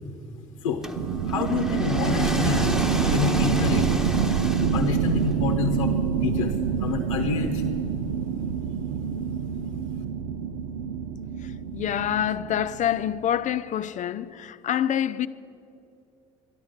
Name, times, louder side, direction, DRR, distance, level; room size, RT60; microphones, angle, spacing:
sound 1, 0.8-5.2, equal, 5° right, 1.2 m, -30 dB
sound 2, 1.0-13.2, right 7 dB, 80° right, 0.5 m, -26 dB
voice 1, 1.3-2.7 3.1-3.9 4.6-5.9 6.2-7.6, left 7 dB, 85° left, 0.8 m, -27 dB
voice 2, 11.4-15.3, left 10 dB, 50° left, 0.6 m, -27 dB
13.0 x 11.0 x 6.5 m
hypercardioid pair, 60°, 16 cm